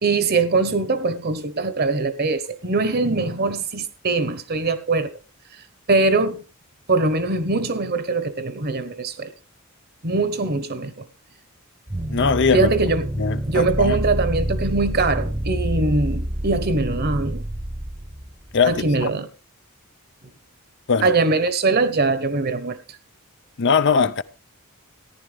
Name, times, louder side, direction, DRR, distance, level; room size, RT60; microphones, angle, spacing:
voice 1, 0.0-5.1 5.9-6.4 6.9-9.3 10.0-11.0 12.5-13.1 13.5-17.4 18.7-19.3 21.0-22.8, right 3 dB, 45° right, 1.1 m, -22 dB
sound 1, 11.9-19.0, right 1 dB, 20° right, 0.9 m, -28 dB
voice 2, 12.1-12.7 13.2-14.0 18.5-19.1 20.9-21.1 23.6-24.2, left 5 dB, 55° left, 0.6 m, -20 dB
14.5 x 10.5 x 3.4 m
head